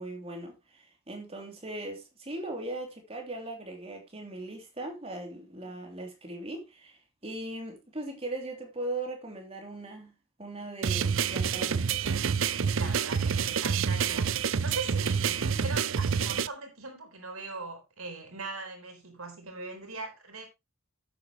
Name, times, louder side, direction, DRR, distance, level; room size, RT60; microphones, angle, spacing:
voice 1, 0.0-10.1 10.4-12.2, right 2 dB, 30° right, 3.1 m, -39 dB
sound 1, 10.8-16.5, right 6 dB, 65° right, 0.5 m, -28 dB
voice 2, 12.7-20.5, right 3 dB, 80° right, 4.0 m, -40 dB
11.5 x 8.7 x 3.0 m
head